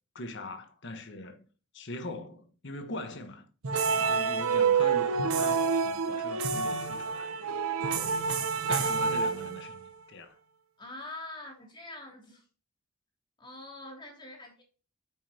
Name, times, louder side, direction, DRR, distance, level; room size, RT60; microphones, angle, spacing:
voice 1, 0.1-1.4 1.7-3.5 3.9-7.3 7.8-8.3 8.7-10.4, left 2 dB, 55° left, 1.3 m, -42 dB
sound 1, 3.6-9.9, right 5 dB, 85° right, 0.9 m, -28 dB
voice 2, 10.8-12.5 13.4-14.6, left 2 dB, 20° left, 2.8 m, -44 dB
9.3 x 5.7 x 2.9 m
head